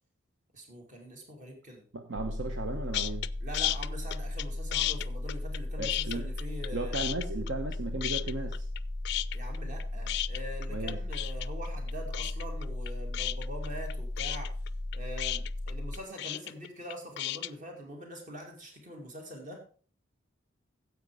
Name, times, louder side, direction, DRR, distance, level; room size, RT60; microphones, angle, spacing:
voice 1, 0.5-1.8 3.4-7.2 9.3-14.5 14.9-19.6, equal, 40° right, 2 dB, 2.4 m, -44 dB
voice 2, 1.9-3.3 5.8-6.2 6.7-8.7 10.7-11.0, right 2 dB, 70° right, 5 dB, 1.0 m, -36 dB
sound 1, 2.1-16.0, left 1 dB, 25° left, 0.7 m, -36 dB
sound 2, 2.9-3.3 3.5-4.4 4.7-6.7 6.9-7.7 8.0-8.8 9.0-17.5, left 15 dB, 55° left, 0.3 m, -33 dB
9.4 x 8.1 x 4.9 m, 0.41 s
head